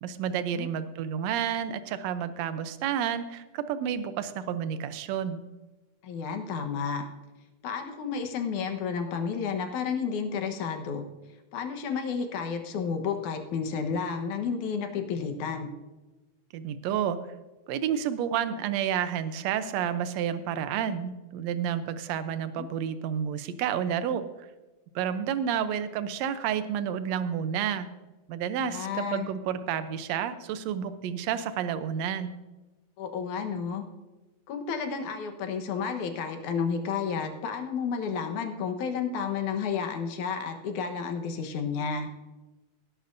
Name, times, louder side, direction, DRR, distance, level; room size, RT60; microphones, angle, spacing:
voice 1, 0.0-5.4 16.5-17.2 17.7-24.2 25.0-27.9 28.3-32.3, right 9 dB, 70° right, 11 dB, 1.8 m, -30 dB
voice 2, 6.0-7.1 7.6-11.1 11.5-15.7 22.6-22.7 28.6-29.3 33.0-33.8 34.5-42.1, left 6 dB, 85° left, 5 dB, 2.7 m, -31 dB
19.0 x 11.0 x 2.6 m, 1.1 s
omnidirectional pair, 3.4 m